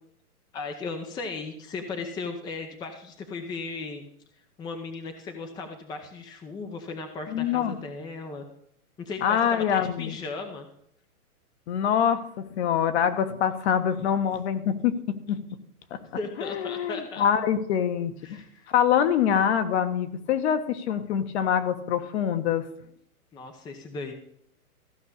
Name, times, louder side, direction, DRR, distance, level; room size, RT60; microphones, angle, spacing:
voice 1, 0.5-4.1 4.6-8.4 9.0-10.7 16.0-17.2 18.2-18.7 23.3-24.1, left 4 dB, 10° left, 5 dB, 0.8 m, -36 dB
voice 2, 7.3-7.8 9.2-10.1 11.7-15.4 15.9-16.0 16.4-18.4 18.7-22.7, left 8 dB, 45° left, 9 dB, 1.4 m, -25 dB
15.0 x 5.4 x 8.4 m, 0.68 s
hypercardioid pair, 145°, 45 cm